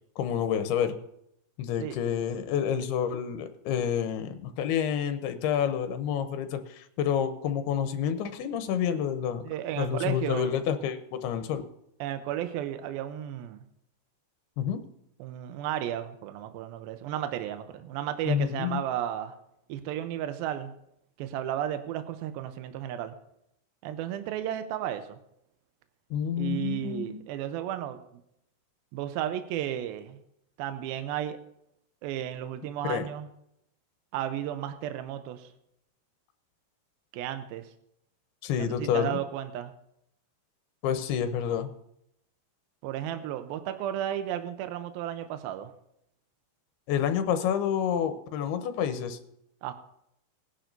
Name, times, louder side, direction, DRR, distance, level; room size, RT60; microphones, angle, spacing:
voice 1, 0.2-1.0 1.6-9.4 9.8-11.6 14.6-14.8 18.3-18.8 26.1-27.2 32.8-33.1 38.4-39.2 40.8-41.7 46.9-49.2, left 8 dB, 85° left, 9 dB, 2.8 m, -29 dB
voice 2, 9.5-10.5 12.0-13.6 15.2-19.3 19.7-20.7 21.2-23.1 23.8-25.2 26.4-28.0 28.9-30.2 30.6-31.4 32.0-33.3 34.1-35.5 37.1-37.7 38.6-39.7 42.8-45.7 49.6-49.7, right 11 dB, 80° right, 9 dB, 2.4 m, -33 dB
20.0 x 10.5 x 2.7 m, 0.77 s
omnidirectional pair, 4.5 m